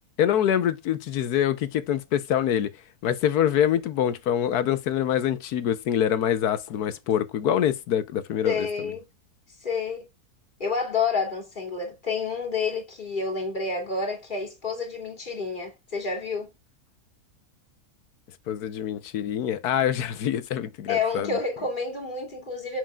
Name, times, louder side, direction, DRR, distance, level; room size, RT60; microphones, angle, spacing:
voice 1, 0.2-2.7 3.0-8.7 18.5-21.3, left 10 dB, 90° left, 1.4 m, -25 dB
voice 2, 8.4-9.1 9.6-10.1 10.6-16.5 20.9-22.8, left 4 dB, 30° left, 2.8 m, -29 dB
7.5 x 6.6 x 2.3 m
omnidirectional pair, 1.6 m